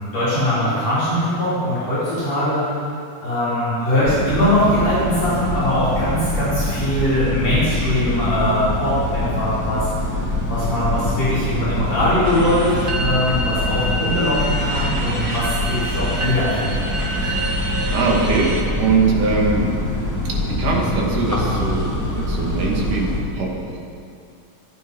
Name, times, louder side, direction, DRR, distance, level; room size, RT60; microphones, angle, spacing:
voice 1, 0.0-2.6 3.2-9.9 10.5-17.3, left 1 dB, 45° left, -11 dB, 6.3 m, -21 dB
sound 1, 4.1-23.2, left 1 dB, 10° left, 1.2 m, -24 dB
sound 2, 12.2-18.6, right 1 dB, 40° right, 0.7 m, -28 dB
voice 2, 17.9-19.7 20.4-23.8, right 4 dB, 60° right, -2 dB, 3.8 m, -21 dB
26.5 x 9.5 x 5.6 m, 2.4 s
omnidirectional pair, 4.1 m